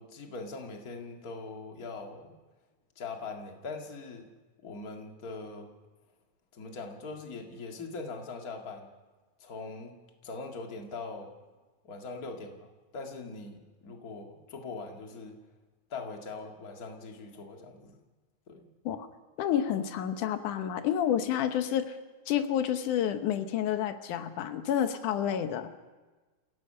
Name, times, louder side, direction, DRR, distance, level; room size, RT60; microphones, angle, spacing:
voice 1, 0.0-2.3 3.0-4.3 4.6-5.7 6.5-8.9 9.4-9.9 10.2-11.3 11.8-15.4 15.9-18.0 18.5-18.7, left 3 dB, 35° left, 2 dB, 2.1 m, -41 dB
voice 2, 19.4-21.8 22.3-25.7, left 10 dB, 90° left, 8 dB, 2.6 m, -29 dB
28.0 x 17.5 x 5.6 m, 1.3 s
omnidirectional pair, 3.4 m